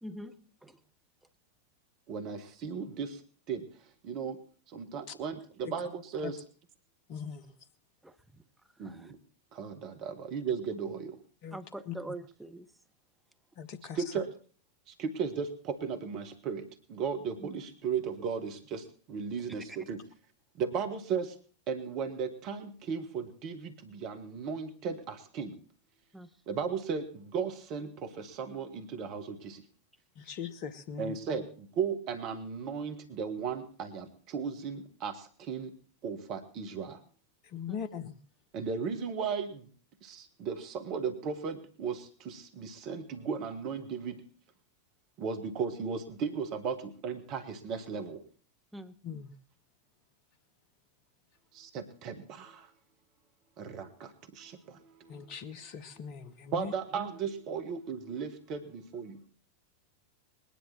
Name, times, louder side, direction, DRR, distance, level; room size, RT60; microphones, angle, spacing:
voice 1, 0.0-0.3 0.6-0.8 8.0-8.1 8.8-9.1 11.5-12.7 17.4-17.6 26.1-26.3 37.7-37.8 48.7-48.9, right 1 dB, 5° right, 7 dB, 1.0 m, -43 dB
voice 2, 2.1-3.2 3.5-3.7 4.0-4.4 4.7-6.4 8.8-9.2 9.5-11.2 13.9-14.3 14.9-20.0 20.6-21.3 21.7-25.6 26.5-29.6 31.0-35.7 36.0-37.0 38.5-39.7 40.0-44.2 45.2-48.2 51.5-52.7 53.6-55.2 56.5-59.2, right 6 dB, 40° right, 8 dB, 1.5 m, -36 dB
voice 3, 7.1-7.5 11.4-11.6 11.9-12.0 13.6-14.1 30.2-31.2 37.4-38.1 49.0-49.3 55.1-56.7, left 7 dB, 45° left, 12 dB, 1.1 m, -40 dB
20.5 x 10.5 x 4.3 m, 0.43 s
figure-of-eight pair, 90°, 0 cm